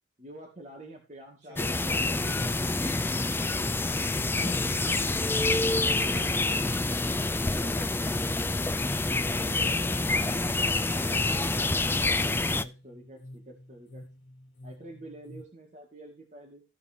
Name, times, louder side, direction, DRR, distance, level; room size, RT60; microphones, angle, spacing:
voice 1, 0.2-2.7 9.3-14.0 14.6-16.6, right 1 dB, 40° right, -1 dB, 2.1 m, -47 dB
voice 2, 1.4-2.0 4.2-8.0, equal, 75° right, 1 dB, 5.5 m, -50 dB
sound 1, 1.6-12.6, left 2 dB, 10° left, 0.4 m, -27 dB
sound 2, 8.7-15.4, left 1 dB, 80° left, 1.4 m, -49 dB
16.0 x 5.6 x 2.8 m, 0.31 s
head